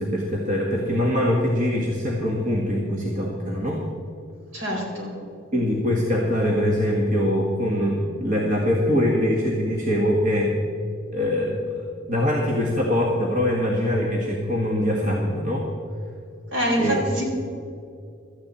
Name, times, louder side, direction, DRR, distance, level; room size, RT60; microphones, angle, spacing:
voice 1, 0.0-3.8 5.5-10.6 11.1-15.7 16.8-17.2, left 1 dB, 40° right, -2 dB, 1.7 m, -23 dB
voice 2, 4.5-5.1 16.5-17.2, equal, 70° right, -1 dB, 4.3 m, -25 dB
16.5 x 13.5 x 4.3 m, 2.5 s
head